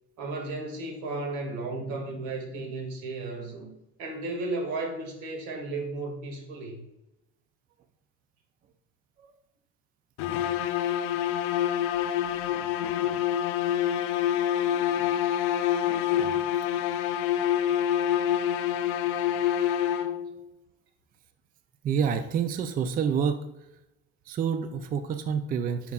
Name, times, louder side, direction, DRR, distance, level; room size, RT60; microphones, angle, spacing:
voice 1, 0.2-3.7 4.0-6.8 14.6-15.1, right 2 dB, 80° right, 2 dB, 2.2 m, -34 dB
sound 1, 10.2-20.4, left 10 dB, 85° left, 0.6 m, -26 dB
voice 2, 21.8-23.5 24.3-25.9, right 7 dB, 30° right, 9 dB, 0.4 m, -28 dB
9.5 x 5.9 x 2.4 m, 0.94 s
cardioid pair, 135°, 31 cm